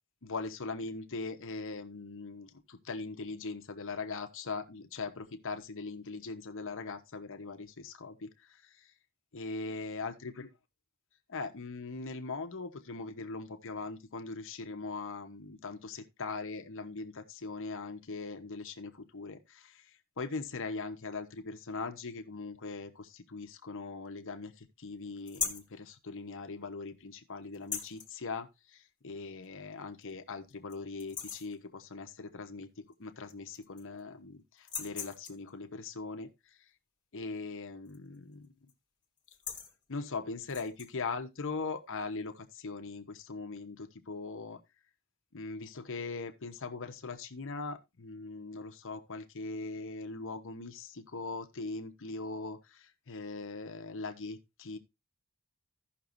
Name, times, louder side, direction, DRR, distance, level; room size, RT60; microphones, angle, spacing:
voice 1, 0.2-8.9 9.3-10.5 11.3-36.7 37.1-38.5 39.9-44.6 45.3-54.8, left 3 dB, 60° left, 1.0 m, -41 dB
sound 1, 25.3-25.7 27.5-28.1 29.4-29.5 30.0-30.1 30.5-30.7 31.0-31.5 32.9-33.0 33.3-34.0 34.6-35.5 37.8-38.2 38.4-38.7 39.2-39.7 40.4-40.9, left 7 dB, 20° left, 2.0 m, -39 dB
16.0 x 6.0 x 2.6 m
head